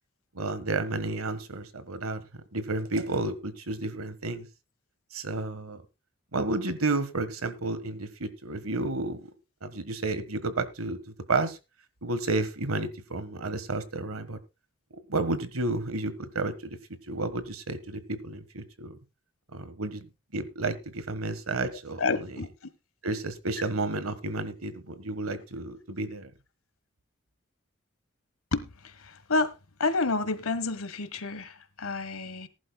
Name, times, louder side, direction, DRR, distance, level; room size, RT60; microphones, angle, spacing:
voice 1, 0.3-2.2 2.5-4.5 5.1-5.8 6.3-9.3 9.6-11.0 11.3-11.6 12.0-14.4 15.1-16.8 17.1-19.0 19.5-20.1 20.3-22.4 23.0-26.3, right 2 dB, 90° right, 1.5 m, -31 dB
voice 2, 22.0-22.5 28.5-29.5 29.8-32.5, left 3 dB, 80° left, 1.3 m, -29 dB
19.0 x 11.0 x 2.3 m
head